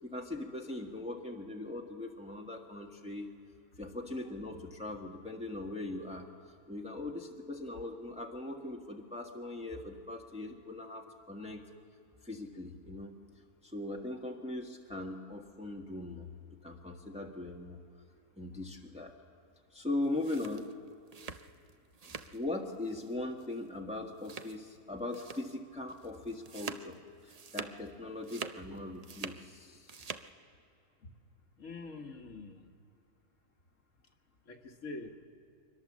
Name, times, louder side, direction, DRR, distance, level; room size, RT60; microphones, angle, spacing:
voice 1, 0.0-3.3 3.8-6.3 6.7-11.6 12.2-13.2 13.6-16.3 16.6-17.8 18.3-19.1 19.7-20.7 22.1-27.0 27.2-30.0, left 2 dB, 5° right, 0 dB, 1.3 m, -40 dB
sound 1, 20.0-22.4 22.7-23.1 23.4-23.5 24.2-24.8 25.1-25.5 25.9-27.9 28.2-29.5 29.7-30.3, right 5 dB, 75° right, 0.3 m, -45 dB
voice 2, 31.6-32.6 34.5-35.3, left 3 dB, 55° left, 4 dB, 1.5 m, -45 dB
23.5 x 20.0 x 7.4 m, 2.5 s
omnidirectional pair, 1.6 m